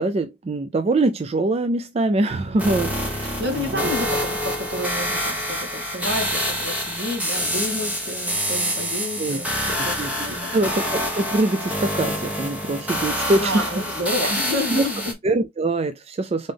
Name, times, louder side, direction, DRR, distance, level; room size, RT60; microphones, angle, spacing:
voice 1, 0.0-3.9 9.2-9.4 9.8-13.7 14.7-14.8 15.2-16.5, right 2 dB, 35° right, 0.4 m, -24 dB
voice 2, 2.5-10.6 13.4-15.1, left 1 dB, 70° right, 2.2 m, -30 dB
sound 1, 2.6-15.1, equal, 10° right, 1.2 m, -26 dB
3.9 x 3.7 x 3.3 m
head